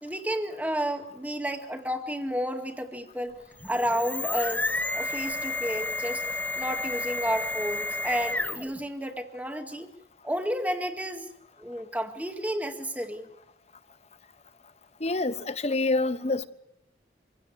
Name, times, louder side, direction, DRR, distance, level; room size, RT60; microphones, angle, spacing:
voice 1, 0.0-3.4 3.6-4.7 4.9-6.2 6.6-9.9 10.2-11.3 11.6-13.3, equal, 10° right, 2.0 m, -31 dB
sound 1, 3.5-8.8, left 2 dB, 10° left, 1.0 m, -31 dB
voice 2, 15.0-16.5, left 2 dB, 40° left, 1.1 m, -27 dB
25.5 x 16.5 x 8.2 m
head